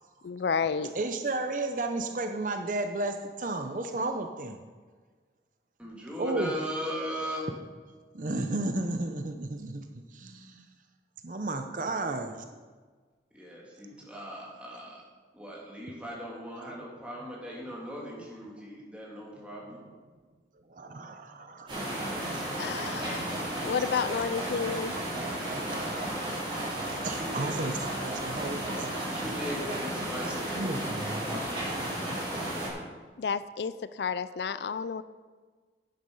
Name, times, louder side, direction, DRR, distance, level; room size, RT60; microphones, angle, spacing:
voice 1, 0.2-0.9 22.6-25.0 33.2-35.0, left 6 dB, 70° left, 15 dB, 0.4 m, -31 dB
voice 2, 0.9-4.6 6.2-6.5 8.1-10.6 11.2-12.3 20.7-23.2 24.2-24.3 25.0-28.9 29.2-29.3 30.5-31.4, right 2 dB, 45° right, 6 dB, 0.7 m, -34 dB
voice 3, 5.8-7.5 13.3-15.0 15.3-19.8 27.0-27.6 29.1-31.6, equal, 5° right, -4 dB, 2.8 m, -39 dB
sound 1, 21.7-32.7, right 1 dB, 30° right, 4.4 m, -33 dB
11.0 x 9.4 x 5.4 m, 1.4 s
head